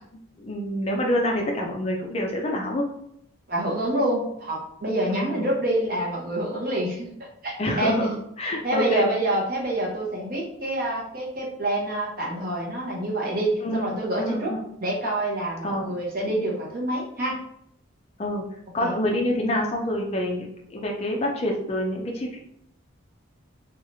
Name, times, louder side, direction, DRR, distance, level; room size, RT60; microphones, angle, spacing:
voice 1, 0.4-2.8 5.1-5.5 7.6-9.1 13.6-13.8 14.2-14.6 15.6-15.9 18.2-18.4 18.7-22.4, left 1 dB, 30° left, 1 dB, 0.3 m, -27 dB
voice 2, 3.5-7.1 7.4-8.0 8.6-14.5 14.8-17.4 18.8-18.9, right 1 dB, 45° right, -2 dB, 0.7 m, -27 dB
3.0 x 2.3 x 2.6 m, 0.73 s
head